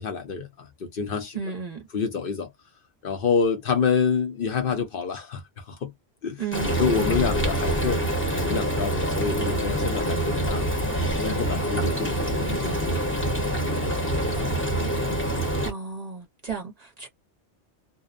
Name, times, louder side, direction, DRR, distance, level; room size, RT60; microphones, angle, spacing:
voice 1, 0.0-1.4 1.9-2.5 3.0-5.9 6.2-6.4 6.8-8.0 8.4-10.7 11.2-14.3, left 6 dB, 60° left, 0.7 m, -28 dB
voice 2, 1.3-1.8 6.4-6.8 15.6-17.1, right 5 dB, 45° right, 0.6 m, -33 dB
Frying (food), 6.5-15.7, right 1 dB, 15° left, 0.7 m, -26 dB
2.5 x 2.0 x 2.5 m
omnidirectional pair, 1.2 m